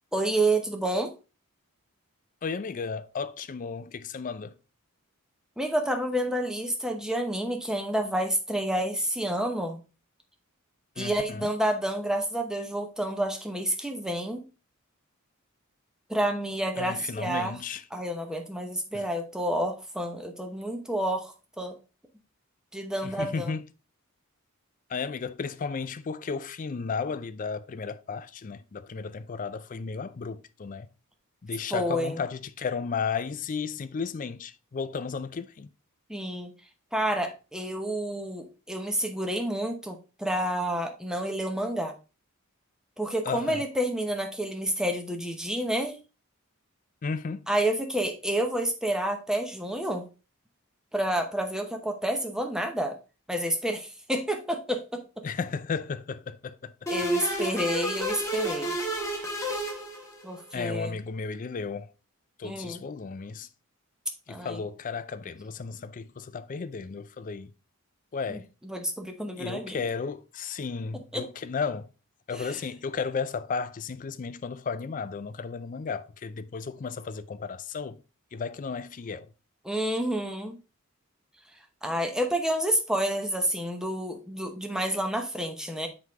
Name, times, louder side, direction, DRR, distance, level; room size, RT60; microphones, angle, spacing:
voice 1, 0.1-1.1 5.6-9.8 11.0-14.5 16.1-17.5 17.9-21.8 22.7-23.6 31.7-32.2 36.1-36.5 36.9-42.0 43.0-46.0 47.5-50.1 50.9-53.0 53.3-55.0 56.9-58.7 60.2-61.0 62.4-62.8 64.3-64.6 68.3-69.8 71.1-71.2 72.3-72.6 79.6-80.6 81.8-85.9, right 1 dB, 5° right, 0.8 m, -29 dB
voice 2, 2.4-4.5 11.0-11.5 16.8-17.8 18.9-19.1 23.0-23.7 24.9-30.9 31.4-35.7 43.2-43.6 47.0-47.5 55.2-56.9 60.5-61.9 62.4-63.5 64.3-67.5 68.1-68.4 69.4-71.9 72.3-78.0 78.3-79.3, left 5 dB, 35° left, 0.4 m, -34 dB
sound 1, 56.9-60.4, right 1 dB, 15° left, 1.5 m, -31 dB
6.5 x 4.8 x 3.5 m
head